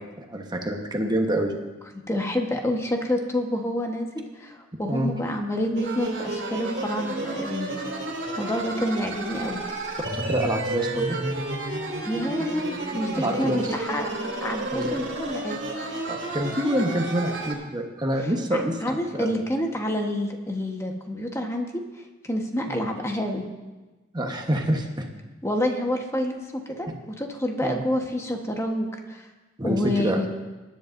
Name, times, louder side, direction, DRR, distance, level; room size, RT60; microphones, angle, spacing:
voice 1, 0.2-1.5 4.8-5.1 10.3-11.2 13.1-13.7 14.7-15.0 16.1-19.3 22.7-22.8 24.1-25.1 26.9-27.0 27.6-27.9 29.6-30.2, right 1 dB, 20° right, 2 dB, 1.2 m, -27 dB
voice 2, 2.1-7.7 8.4-9.6 12.0-14.1 14.4-15.6 18.5-21.7 22.2-23.4 25.4-29.2 29.6-30.3, left 1 dB, 15° left, 2 dB, 1.2 m, -28 dB
sound 1, 5.7-17.5, right 2 dB, 65° right, 2.5 m, -31 dB
19.5 x 10.5 x 2.6 m, 1.2 s
head